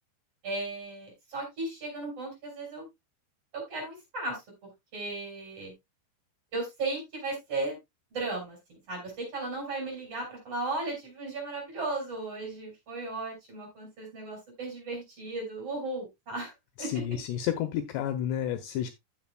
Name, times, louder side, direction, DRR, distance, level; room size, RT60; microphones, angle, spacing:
voice 1, 0.4-2.9 3.5-4.4 4.9-5.7 6.5-7.8 8.1-16.5 16.8-16.9, right 2 dB, 35° right, 1 dB, 5.1 m, -35 dB
voice 2, 16.8-18.9, left 10 dB, 80° left, 9 dB, 2.7 m, -31 dB
14.5 x 6.2 x 2.2 m, 0.20 s
omnidirectional pair, 5.4 m